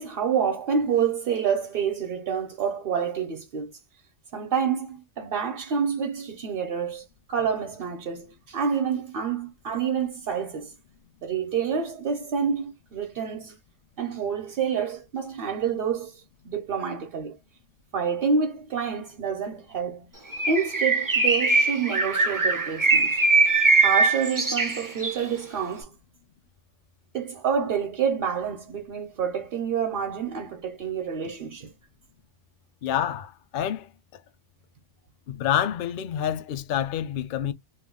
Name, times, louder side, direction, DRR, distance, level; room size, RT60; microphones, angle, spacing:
voice 1, 0.0-3.7 4.3-10.7 11.2-13.6 14.0-17.4 17.9-20.0 20.5-23.1 23.8-25.9 27.1-31.7, right 6 dB, 55° right, 0.8 m, -28 dB
Bird, 20.3-25.2, right 3 dB, 25° right, 0.4 m, -22 dB
voice 2, 32.8-34.2 35.3-37.5, left 10 dB, 60° left, 0.6 m, -28 dB
2.4 x 2.2 x 3.5 m
omnidirectional pair, 1.2 m